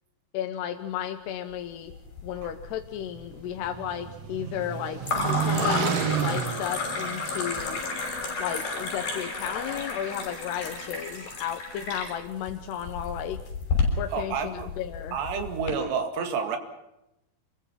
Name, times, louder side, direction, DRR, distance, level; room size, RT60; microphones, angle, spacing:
voice 1, 0.3-1.9 2.2-7.8 8.4-13.4 14.0-15.2, left 10 dB, 85° left, 6 dB, 3.2 m, -34 dB
sound 1, 1.9-2.6 2.9-3.6 5.0-15.7, left 3 dB, 60° left, 7.9 m, -31 dB
sound 2, 3.0-7.8, right 8 dB, 60° right, 1.7 m, -31 dB
voice 2, 14.1-14.7 15.1-16.6, right 6 dB, 90° right, 7 dB, 4.4 m, -29 dB
26.5 x 22.5 x 5.9 m, 0.89 s
omnidirectional pair, 4.7 m